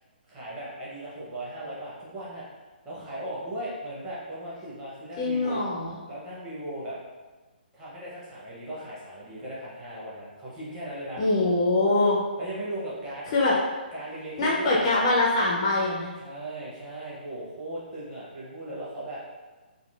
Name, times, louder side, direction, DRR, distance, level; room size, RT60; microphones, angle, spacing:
voice 1, 0.3-2.4 2.8-5.7 6.1-7.0 7.7-11.2 12.4-13.3 13.9-15.0 16.2-19.2, right 1 dB, 10° right, -8 dB, 0.6 m, -37 dB
voice 2, 5.2-5.9 11.2-12.2 13.3-13.5 14.4-16.1, left 2 dB, 25° left, -4 dB, 0.3 m, -23 dB
3.5 x 2.2 x 2.3 m, 1.3 s
hypercardioid pair, 165°, 6 cm